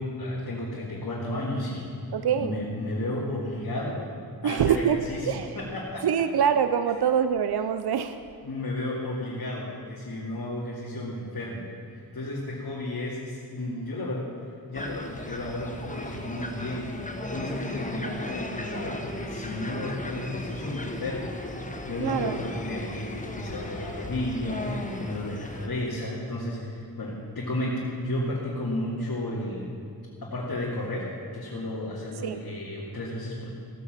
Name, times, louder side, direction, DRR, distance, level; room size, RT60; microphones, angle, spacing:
voice 1, 0.0-1.8 2.4-4.1 4.4-6.1 8.4-11.7 11.9-14.3 14.7-16.9 17.3-21.3 21.9-29.7 30.2-33.5, left 1 dB, 65° left, -6 dB, 2.4 m, -33 dB
voice 2, 2.1-2.5 4.4-5.0 5.3-5.5 6.0-8.2 22.0-22.4 32.2-32.4, right 8 dB, 80° right, 10 dB, 0.6 m, -24 dB
sound 1, 14.7-25.7, left 1 dB, 20° left, 1.2 m, -36 dB
16.0 x 8.5 x 7.5 m, 2.4 s
wide cardioid pair, 80°, 38 cm